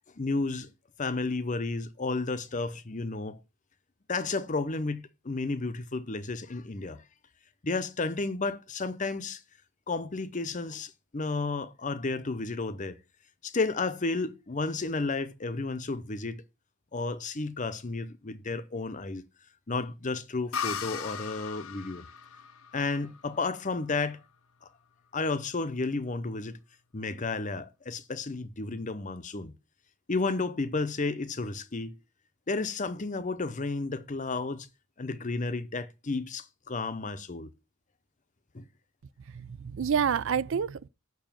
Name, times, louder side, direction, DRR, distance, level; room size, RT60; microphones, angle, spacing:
voice 1, 0.2-0.7 1.0-3.4 4.1-7.0 7.6-9.4 9.9-13.0 13.4-16.4 16.9-19.2 19.7-22.0 22.7-24.2 25.1-26.6 26.9-29.5 30.1-32.0 32.5-34.7 35.0-37.5 38.5-38.6, left 3 dB, 35° left, 0.7 m, -32 dB
sound 1, 20.5-24.1, left 7 dB, 70° left, 0.8 m, -38 dB
voice 2, 39.3-40.9, right 7 dB, 60° right, 0.4 m, -28 dB
7.0 x 6.4 x 7.3 m
head